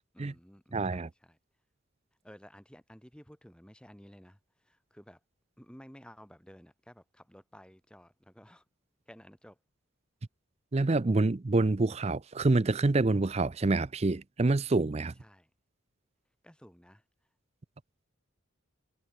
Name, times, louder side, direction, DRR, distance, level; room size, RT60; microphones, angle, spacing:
voice 1, 0.1-1.4 2.2-5.2 5.6-8.6 9.1-9.6 15.2-15.5 16.4-17.0, equal, 5° left, 3.1 m, -54 dB
voice 2, 0.7-1.1 10.7-15.1, right 2 dB, 30° right, 0.5 m, -27 dB
head